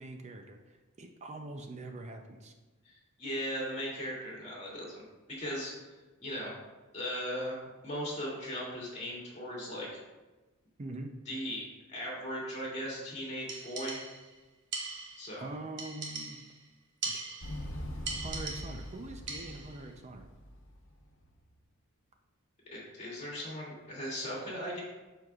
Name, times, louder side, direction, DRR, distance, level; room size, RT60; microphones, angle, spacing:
voice 1, 0.0-2.5 10.8-11.1 15.4-16.4 17.1-17.2 18.2-20.3, right 2 dB, 30° right, 4 dB, 0.5 m, -44 dB
voice 2, 2.8-5.0 5.4-5.9 6.2-6.5 6.9-7.6 7.8-10.0 11.3-11.6 11.9-14.0 15.2-15.5 22.7-24.8, equal, 30° left, -6 dB, 2.4 m, -38 dB
sound 1, 13.5-14.3 14.7-15.4 15.8-16.6 17.0-17.7 18.1-18.9 19.3-19.8, right 4 dB, 50° right, 1.3 m, -40 dB
Motorcycle, 17.4-21.3, equal, 60° left, 1.0 m, -43 dB
12.5 x 4.6 x 2.4 m, 1.2 s
head